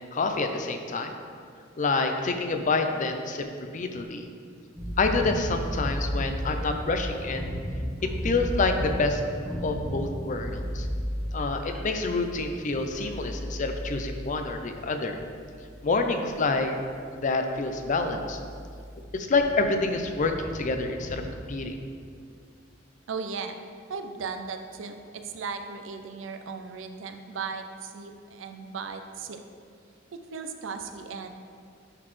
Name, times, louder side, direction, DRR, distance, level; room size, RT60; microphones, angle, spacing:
voice 1, 0.1-1.1 1.8-3.5 3.7-4.3 5.0-7.5 8.0-9.2 9.6-10.9 11.3-15.2 15.8-16.7 17.1-18.4 19.1-21.8, left 3 dB, 40° left, 6 dB, 0.5 m, -27 dB
sound 1, 4.7-16.0 16.3-16.6 16.9-17.0 17.4-21.3, equal, ahead, 1.2 m, -35 dB
voice 2, 23.1-23.6 23.9-29.4 30.3-31.3, right 5 dB, 85° right, 6 dB, 0.5 m, -36 dB
9.8 x 4.0 x 3.2 m, 2.2 s
head